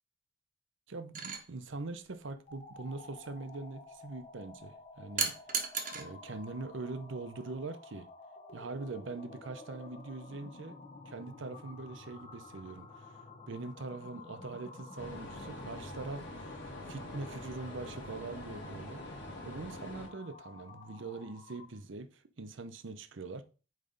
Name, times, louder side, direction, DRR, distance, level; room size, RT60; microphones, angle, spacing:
voice 1, 0.9-5.3 5.9-8.1 8.5-10.8 11.1-13.1 13.5-19.0 19.4-23.4, right 3 dB, 65° right, 0.7 m, -43 dB
sound 1, 1.1-1.4 5.2-6.1 7.4-7.6, right 6 dB, 45° right, 1.0 m, -34 dB
sound 2, 2.4-21.8, left 3 dB, 30° left, 1.0 m, -51 dB
sound 3, 15.0-20.1, left 1 dB, 60° left, 1.6 m, -45 dB
8.6 x 3.3 x 3.9 m
head